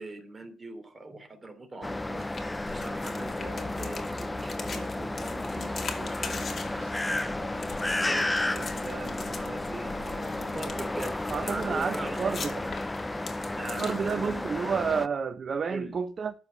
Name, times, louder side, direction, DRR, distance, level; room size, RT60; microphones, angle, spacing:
voice 1, 0.0-7.7 8.0-12.5 13.6-14.5 15.7-15.9, right 2 dB, 25° right, 3.2 m, -42 dB
sound 1, 1.8-15.1, left 2 dB, 15° left, 0.6 m, -32 dB
sound 2, 2.2-14.6, left 5 dB, 45° left, 2.5 m, -43 dB
sound 3, 3.4-10.6, left 6 dB, 80° left, 3.5 m, -48 dB
voice 2, 11.3-12.5 13.8-16.3, right 6 dB, 45° right, 0.8 m, -30 dB
13.0 x 5.1 x 8.5 m
cardioid pair, 90°, 0 cm